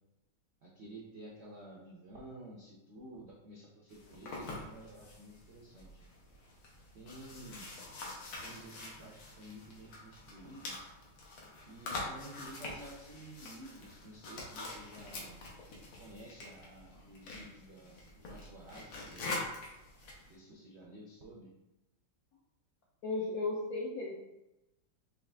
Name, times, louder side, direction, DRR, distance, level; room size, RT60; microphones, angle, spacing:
voice 1, 0.6-6.0 6.9-7.7 8.4-10.9 11.7-15.4 16.0-19.4 20.2-21.5, right 1 dB, 80° right, -4 dB, 0.6 m, -51 dB
sound 1, 3.9-20.3, left 2 dB, 90° left, 1.9 m, -45 dB
voice 2, 23.0-24.2, left 3 dB, 70° left, -3 dB, 0.8 m, -35 dB
5.7 x 2.4 x 3.4 m, 0.94 s
omnidirectional pair, 2.2 m